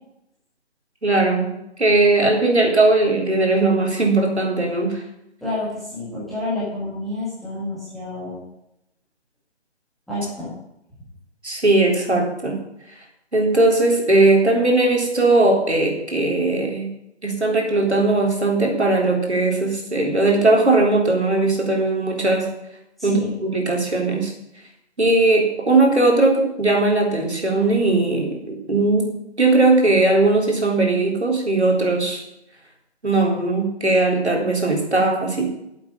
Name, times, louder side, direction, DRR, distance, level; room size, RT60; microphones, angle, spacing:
voice 1, 1.0-1.5 1.8-5.0 11.4-12.6 13.3-16.9 17.2-22.5 23.0-24.3 25.0-32.2 33.0-35.5, right 2 dB, 70° right, 1 dB, 3.7 m, -19 dB
voice 2, 5.4-8.4 10.1-10.5 23.0-23.3, left 2 dB, ahead, -12 dB, 1.6 m, -29 dB
8.7 x 8.4 x 8.4 m, 0.81 s
figure-of-eight pair, 155°, 34 cm